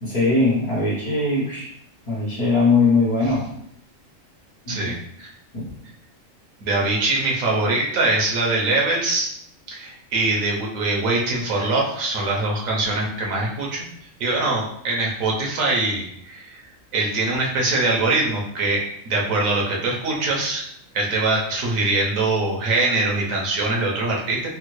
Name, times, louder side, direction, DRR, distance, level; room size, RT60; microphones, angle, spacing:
voice 1, 0.0-1.7 2.1-3.5 4.7-4.9 5.5-5.7, left 3 dB, 35° left, -9 dB, 1.0 m, -20 dB
voice 2, 4.7-5.3 6.6-9.3 9.7-13.8 14.2-16.6 16.9-20.6 20.9-24.5, right 2 dB, 90° right, -1 dB, 1.2 m, -23 dB
3.5 x 2.1 x 3.1 m, 0.72 s
omnidirectional pair, 1.4 m